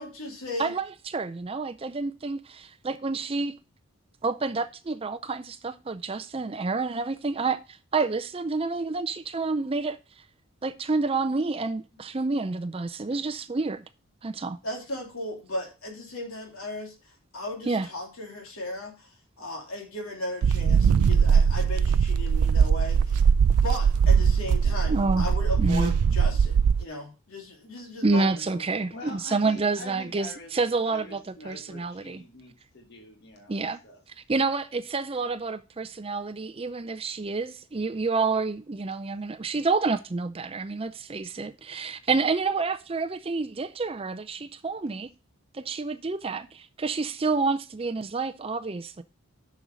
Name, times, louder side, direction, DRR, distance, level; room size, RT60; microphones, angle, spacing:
voice 1, 0.0-0.7 14.6-16.9 17.3-19.1 19.4-23.2 23.6-28.3, left 1 dB, 70° left, 3.1 m, -36 dB
voice 2, 0.6-3.5 4.2-10.0 10.6-13.8 14.2-14.6 17.7-17.9 24.9-25.3 25.6-25.9 28.0-31.2 31.5-32.2 33.5-33.8 34.3-45.1 45.5-49.0, right 3 dB, 25° right, 0.4 m, -28 dB
sound 1, 20.4-26.8, right 6 dB, 85° right, 0.4 m, -21 dB
voice 3, 28.9-30.5 30.8-34.0, left 2 dB, 45° left, 1.4 m, -45 dB
7.0 x 6.3 x 5.2 m
head